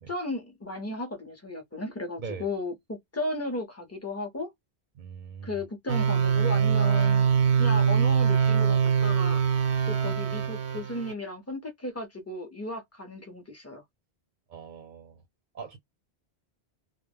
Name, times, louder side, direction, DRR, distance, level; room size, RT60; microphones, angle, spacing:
voice 1, 0.1-4.5 5.4-7.3 7.6-9.4 9.9-13.8, left 2 dB, 20° left, 0.5 m, -35 dB
voice 2, 5.0-5.6 14.5-15.2 15.5-15.8, right 6 dB, 55° right, 0.6 m, -41 dB
sound 1, 5.9-11.1, right 7 dB, 85° right, 0.9 m, -23 dB
2.1 x 2.0 x 3.3 m
omnidirectional pair, 1.1 m